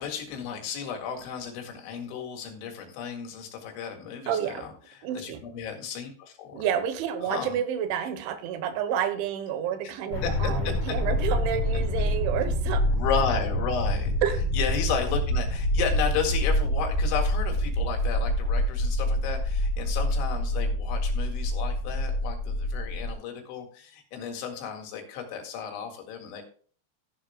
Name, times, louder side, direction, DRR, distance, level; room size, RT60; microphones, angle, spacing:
voice 1, 0.0-6.7 7.3-7.6 10.2-10.7 11.1-11.2 12.9-14.1 14.5-26.4, left 7 dB, 90° left, 3 dB, 4.3 m, -33 dB
voice 2, 4.3-4.7 5.0-5.4 6.5-12.8 14.2-14.4, right 9 dB, 85° right, 10 dB, 3.5 m, -29 dB
sound 1, 10.1-23.1, left 1 dB, 65° left, 4.0 m, -26 dB
14.0 x 11.0 x 2.3 m, 0.43 s
omnidirectional pair, 5.2 m